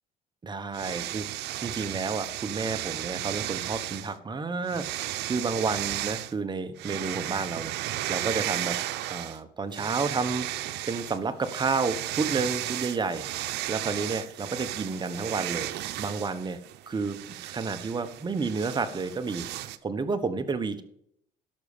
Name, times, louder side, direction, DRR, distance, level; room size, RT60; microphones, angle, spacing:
voice 1, 0.4-1.3 1.6-8.8 9.1-10.5 10.9-15.7 16.0-16.6 16.9-17.2 17.5-19.5 19.8-20.8, right 4 dB, 25° right, 9 dB, 1.3 m, -31 dB
sound 1, 0.7-4.1 4.7-6.3 6.8-9.4 9.7-19.8, right 15 dB, 85° right, 0.8 m, -34 dB
12.0 x 6.5 x 7.2 m, 0.71 s
cardioid pair, 110°, 17 cm